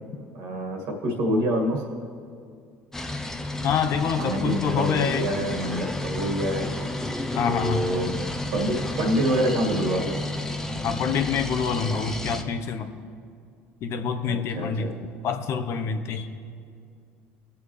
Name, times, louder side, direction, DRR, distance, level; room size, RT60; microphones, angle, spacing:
voice 1, 0.3-1.8 4.2-6.7 7.4-8.2 8.5-10.2 14.2-14.9, equal, 70° right, 1 dB, 2.1 m, -26 dB
sound 1, 2.9-12.4, left 2 dB, 10° left, 0.8 m, -32 dB
voice 2, 3.6-5.3 7.4-7.8 10.8-12.9 13.8-14.9 15.2-16.3, left 6 dB, 60° left, 7 dB, 0.8 m, -26 dB
19.0 x 7.1 x 3.3 m, 2.3 s
supercardioid pair, 95°, 5 cm